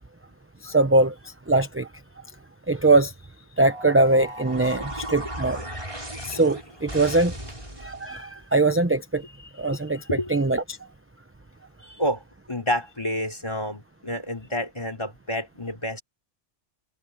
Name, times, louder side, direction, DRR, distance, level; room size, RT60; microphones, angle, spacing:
voice 1, 0.6-1.9 2.7-3.1 3.6-5.6 6.2-7.3 7.8-9.3 9.5-10.8, right 2 dB, 15° right, 0.8 m, -22 dB
sound 1, 3.6-8.2, right 1 dB, 30° right, 7.2 m, -36 dB
voice 2, 11.8-12.2 12.5-16.0, equal, 25° left, 4.0 m, -29 dB
omnidirectional pair, 1.1 m